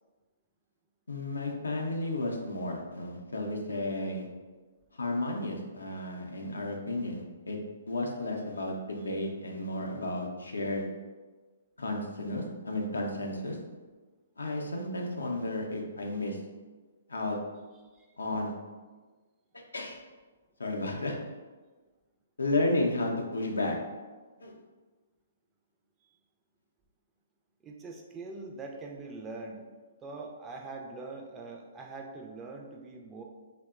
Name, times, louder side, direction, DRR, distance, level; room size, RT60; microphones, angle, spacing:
voice 1, 1.1-4.3 5.0-7.6 7.9-10.9 11.8-13.6 14.4-16.4 17.1-17.4 18.2-18.5 19.5-20.0 20.6-21.2 22.4-23.8 24.4-24.5, left 2 dB, 85° left, 1 dB, 0.4 m, -32 dB
voice 2, 27.6-29.7 30.0-33.2, right 3 dB, 20° right, 1 dB, 0.3 m, -43 dB
2.7 x 2.0 x 2.3 m, 1.3 s
hypercardioid pair, 130°, 0 cm